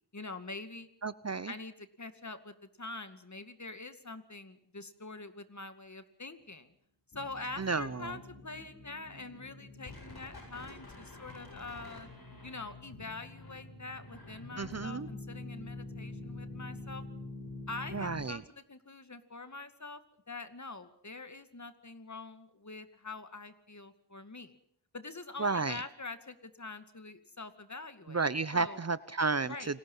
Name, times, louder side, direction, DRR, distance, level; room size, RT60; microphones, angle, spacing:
voice 1, 0.1-0.9 1.5-6.7 7.1-12.1 12.4-17.0 17.7-20.0 20.3-24.6 24.9-28.2 28.5-28.8 29.4-29.7, left 3 dB, 40° left, 10 dB, 2.3 m, -45 dB
voice 2, 1.0-1.5 7.6-8.2 14.6-15.1 17.9-18.4 25.4-25.8 28.1-29.8, right 4 dB, 40° right, 16 dB, 0.8 m, -32 dB
sound 1, 7.1-18.3, left 2 dB, 60° left, 8.0 m, -46 dB
29.0 x 20.5 x 5.6 m, 0.69 s
wide cardioid pair, 55°, 42 cm